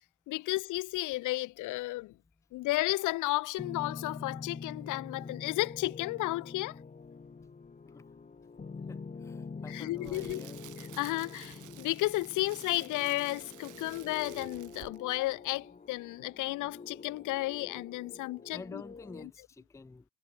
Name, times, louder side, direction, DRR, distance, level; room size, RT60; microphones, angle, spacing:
voice 1, 0.3-2.1 2.5-6.8 9.7-10.4 10.8-18.8, left 19 dB, 80° left, 0.5 m, -33 dB
sound 1, 3.6-19.2, left 4 dB, 25° left, 1.6 m, -46 dB
voice 2, 8.9-10.6 18.5-20.0, left 4 dB, 10° left, 0.4 m, -48 dB
Crackle, 9.7-15.2 15.4-15.6, right 14 dB, 80° right, 2.1 m, -52 dB
cardioid pair, 90°, 30 cm